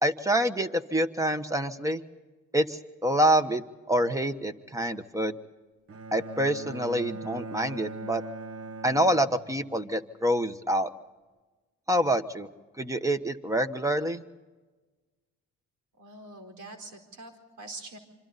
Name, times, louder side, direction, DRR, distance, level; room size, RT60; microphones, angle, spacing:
voice 1, 0.0-2.0 2.5-5.4 6.1-8.2 8.8-10.9 11.9-12.5 12.8-14.2, right 1 dB, 10° right, 10 dB, 1.2 m, -26 dB
Bowed string instrument, 5.9-10.0, right 3 dB, 50° right, 1.2 m, -41 dB
voice 2, 16.0-18.0, right 2 dB, 80° right, 5 dB, 4.5 m, -44 dB
26.0 x 25.5 x 4.1 m, 1.3 s
cardioid pair, 90°, 30 cm